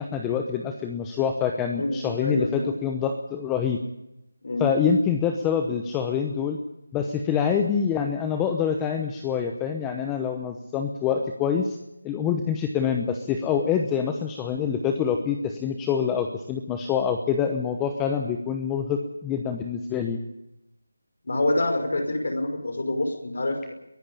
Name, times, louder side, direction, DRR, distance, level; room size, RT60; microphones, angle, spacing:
voice 1, 0.0-3.8 4.6-6.6 6.9-11.8 12.0-20.2, left 7 dB, 10° left, 5 dB, 0.9 m, -26 dB
voice 2, 1.8-2.7 4.4-4.6 21.2-23.7, left 2 dB, 55° left, 5 dB, 5.5 m, -26 dB
22.5 x 13.0 x 8.7 m, 0.86 s
figure-of-eight pair, 170°, 0 cm